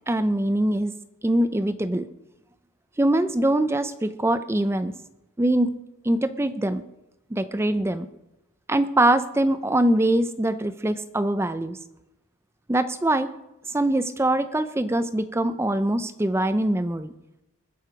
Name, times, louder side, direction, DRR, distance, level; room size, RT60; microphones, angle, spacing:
voice 1, 0.1-0.9 1.2-2.1 3.0-4.9 5.4-5.8 6.0-6.8 7.3-8.1 8.7-11.8 12.7-13.3 13.7-17.1, right 1 dB, 10° right, 12 dB, 0.4 m, -23 dB
21.0 x 7.7 x 5.2 m, 0.90 s
head